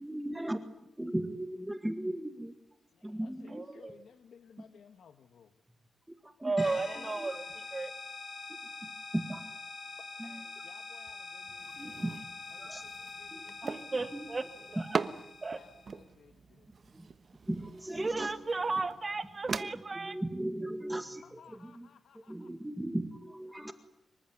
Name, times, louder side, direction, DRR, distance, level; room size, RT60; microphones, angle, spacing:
voice 1, 0.0-2.5 3.0-3.8 6.2-6.5 7.0-7.4 8.5-9.4 10.2-10.4 11.8-12.1 12.6-12.9 13.3-14.3 16.9-17.1 17.5-18.3 19.5-21.9 22.1-23.7, right 1 dB, 5° right, 8 dB, 2.0 m, -38 dB
voice 2, 2.9-5.5 9.9-12.0 12.5-13.5 15.5-16.7 21.2-22.5 23.6-23.7, left 7 dB, 75° left, 9 dB, 1.6 m, -59 dB
voice 3, 3.5-4.0 6.4-7.9 13.6-14.4 14.7-15.0 15.4-15.6 17.9-20.2, right 3 dB, 25° right, 9 dB, 2.3 m, -34 dB
sound 1, 6.6-16.0, left 4 dB, 35° left, 5.4 m, -45 dB
sound 2, 11.4-19.6, right 5 dB, 45° right, 1.2 m, -41 dB
26.0 x 23.5 x 9.6 m, 0.82 s
wide cardioid pair, 135°, 0 cm